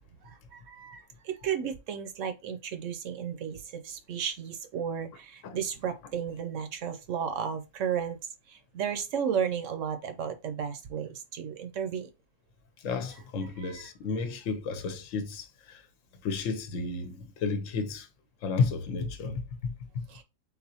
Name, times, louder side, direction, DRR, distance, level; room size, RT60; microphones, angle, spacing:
voice 1, 0.2-8.2 8.5-12.1 13.4-13.8 20.1-20.2, right 8 dB, 65° right, 0.9 m, -34 dB
voice 2, 12.8-15.8 16.2-18.1 18.4-20.1, left 4 dB, 60° left, 1.1 m, -32 dB
4.0 x 3.8 x 2.8 m
omnidirectional pair, 1.6 m